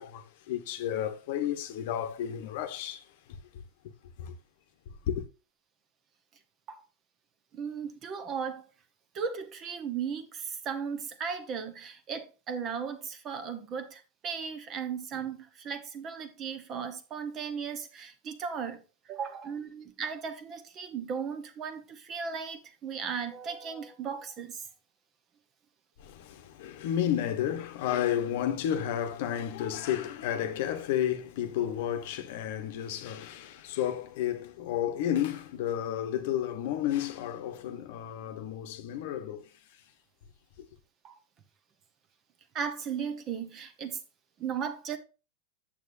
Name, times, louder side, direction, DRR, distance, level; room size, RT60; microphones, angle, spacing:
voice 1, 0.0-3.1 4.2-4.3 5.1-5.2 26.0-39.5, left 10 dB, 55° left, 1.0 m, -32 dB
voice 2, 7.5-8.7 9.1-24.7 41.0-41.2 42.5-44.0 44.4-45.0, right 6 dB, 25° right, 1.0 m, -36 dB
8.6 x 7.6 x 2.7 m
supercardioid pair, 160°, 0 cm